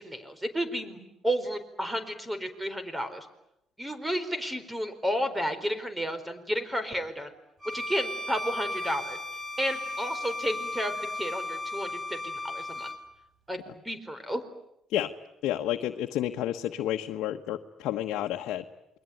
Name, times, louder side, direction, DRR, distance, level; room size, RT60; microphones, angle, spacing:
voice 1, 0.0-3.3 3.8-7.3 7.6-9.2 9.6-12.9 13.5-14.4, equal, 10° right, 11 dB, 4.4 m, -32 dB
Bowed string instrument, 7.6-13.0, left 2 dB, 35° right, 5.4 m, -35 dB
voice 2, 15.4-18.6, left 12 dB, 80° left, 3 dB, 1.3 m, -30 dB
28.5 x 22.0 x 9.4 m, 0.82 s
cardioid pair, 90°, 0 cm